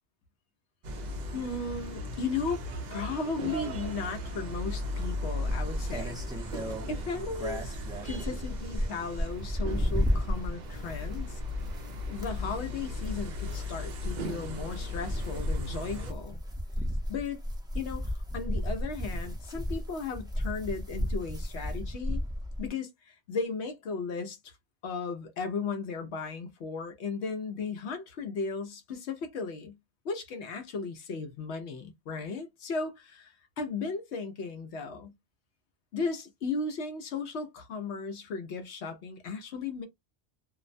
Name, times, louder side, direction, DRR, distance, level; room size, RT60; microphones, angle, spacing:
sound 1, 0.8-16.1, left 1 dB, 55° right, 0.5 m, -37 dB
voice 1, 1.3-2.6 2.9-6.2 6.9-7.7 8.0-11.4 12.1-16.4 17.1-17.4 17.7-22.2 22.6-24.5 24.8-29.8 30.0-35.1 35.9-39.9, left 4 dB, 80° left, 0.9 m, -36 dB
sound 2, 5.4-22.7, equal, 5° right, 0.5 m, -34 dB
2.5 x 2.1 x 2.5 m
omnidirectional pair, 1.1 m